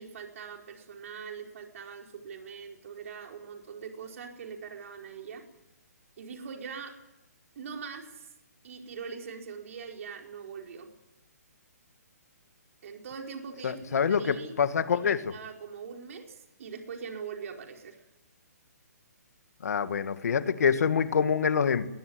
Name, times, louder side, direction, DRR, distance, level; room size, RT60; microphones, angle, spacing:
voice 1, 0.0-5.4 6.2-7.0 7.5-8.3 8.6-10.9 12.8-14.5 14.9-18.0, right 6 dB, 55° right, 2 dB, 4.7 m, -42 dB
voice 2, 13.6-15.2 19.6-21.9, left 6 dB, 65° left, 11 dB, 2.0 m, -26 dB
21.0 x 20.5 x 9.7 m, 0.94 s
hypercardioid pair, 155°, 9 cm